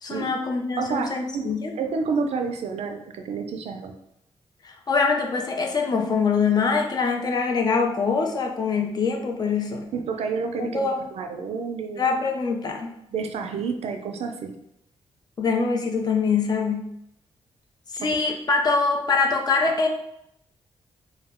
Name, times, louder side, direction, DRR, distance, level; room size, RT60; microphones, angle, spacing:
voice 1, 0.0-1.7 4.6-9.8 10.6-11.0 12.0-12.9 15.4-16.9 17.9-19.9, left 4 dB, 40° left, 2 dB, 0.4 m, -24 dB
voice 2, 0.8-1.5 1.8-3.9 9.9-12.1 13.1-14.5, right 5 dB, 75° right, 5 dB, 0.4 m, -29 dB
2.2 x 2.0 x 3.4 m, 0.78 s
wide cardioid pair, 130°, 11 cm